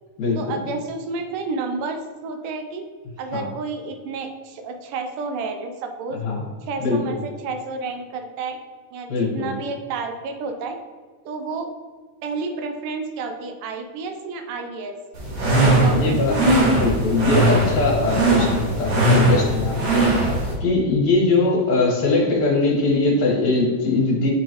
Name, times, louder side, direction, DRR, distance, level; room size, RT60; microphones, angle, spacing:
voice 1, 0.4-2.8 3.2-6.2 6.7-8.6 8.9-10.8 11.3-11.7 12.2-14.9 15.7-16.2, right 4 dB, 90° right, 5 dB, 2.4 m, -30 dB
voice 2, 6.8-7.1 9.1-9.5 15.5-16.3 16.7-24.3, left 3 dB, 65° left, -6 dB, 2.5 m, -21 dB
sound 1, 15.1-20.5, right 1 dB, 60° right, 3.1 m, -19 dB
10.0 x 3.9 x 3.0 m, 1.5 s
omnidirectional pair, 3.7 m